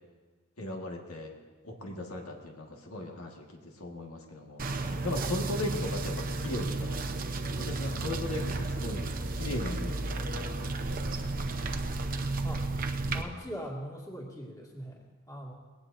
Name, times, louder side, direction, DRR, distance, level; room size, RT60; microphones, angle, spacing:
voice 1, 0.6-1.3 1.6-7.1 7.6-10.9, left 1 dB, 80° left, 1 dB, 1.7 m, -38 dB
sound 1, 4.6-13.2, right 2 dB, 40° right, 0.8 m, -33 dB
voice 2, 13.1-15.5, equal, 15° left, -2 dB, 2.2 m, -41 dB
20.0 x 17.5 x 2.7 m, 1.4 s
head